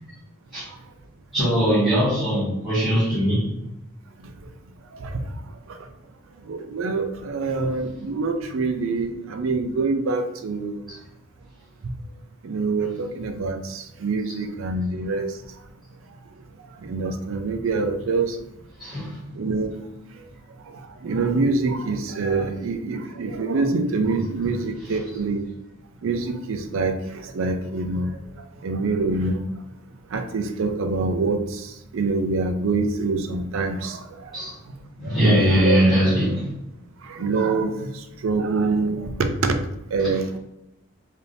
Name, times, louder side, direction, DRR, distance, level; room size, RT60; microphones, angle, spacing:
voice 1, 1.3-3.5 10.9-11.0 12.8-12.9 14.3-14.4 18.8-19.2 24.1-24.5 24.8-25.0 34.3-34.5 35.0-36.4 40.0-40.2, equal, ahead, 1.3 m, -21 dB
voice 2, 6.5-10.8 12.4-15.4 16.8-18.4 19.3-19.8 20.7-25.4 26.0-28.1 28.6-29.4 30.1-34.3 35.0-35.8 37.0-39.5 39.9-40.4, right 3 dB, 80° right, 0.4 m, -25 dB
3.4 x 2.7 x 2.6 m
head